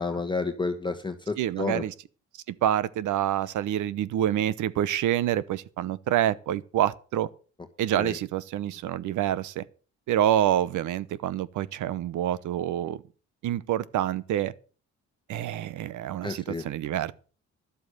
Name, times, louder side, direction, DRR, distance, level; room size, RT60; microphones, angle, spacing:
voice 1, 0.0-1.8 7.9-8.2 16.2-16.6, left 3 dB, 15° left, 1.2 m, -30 dB
voice 2, 1.4-1.9 2.6-7.3 7.8-9.6 10.1-13.0 13.4-14.5 15.3-17.1, right 11 dB, 80° right, 0.9 m, -27 dB
11.5 x 7.8 x 6.8 m
cardioid pair, 90°, 30 cm